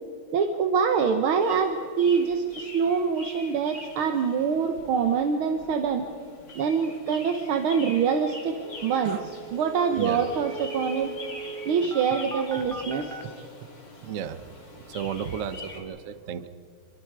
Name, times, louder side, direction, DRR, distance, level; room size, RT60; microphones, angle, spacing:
voice 1, 0.3-6.1 6.6-11.1 11.7-13.1, right 6 dB, 80° right, 6 dB, 2.0 m, -25 dB
sound 1, 1.4-15.8, left 2 dB, 45° left, 3.4 m, -44 dB
sound 2, 8.0-8.1 8.3-8.4 8.6-13.2, right 5 dB, ahead, 0.9 m, -40 dB
voice 2, 14.0-14.4 14.9-16.5, right 8 dB, 55° right, 11 dB, 0.9 m, -33 dB
27.0 x 23.0 x 4.8 m, 2.2 s
omnidirectional pair, 2.3 m